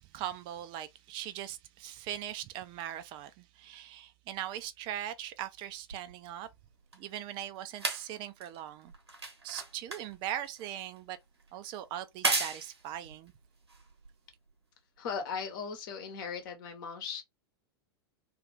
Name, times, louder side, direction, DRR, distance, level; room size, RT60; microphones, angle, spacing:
voice 1, 0.1-6.5 6.9-8.9 9.4-11.2 11.5-13.3, right 11 dB, 40° right, 0.4 m, -40 dB
sound 1, 5.9-14.5 15.4-15.5, right 3 dB, 85° right, 0.9 m, -38 dB
voice 2, 15.0-17.2, left 6 dB, 55° left, 0.9 m, -38 dB
2.5 x 2.4 x 3.3 m
figure-of-eight pair, 90°, 13 cm